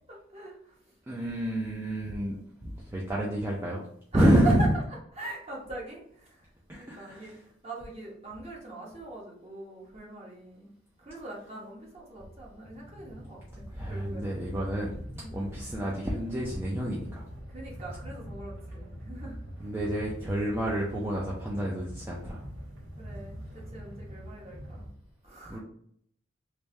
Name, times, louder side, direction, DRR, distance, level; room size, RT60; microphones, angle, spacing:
voice 1, 0.1-1.0 4.1-4.5 5.1-10.7 11.0-14.4 15.1-15.5 17.5-19.4 23.0-24.9 25.2-25.6, right 3 dB, 30° right, -3 dB, 1.0 m, -42 dB
voice 2, 1.1-3.8 4.1-4.7 6.7-7.4 13.7-15.0 15.3-17.2 19.6-22.5 25.5-25.6, right 1 dB, 10° right, -5 dB, 0.4 m, -29 dB
sound 1, 12.6-24.9, equal, 80° right, 1.2 m, -43 dB
3.3 x 2.6 x 3.2 m, 0.68 s
head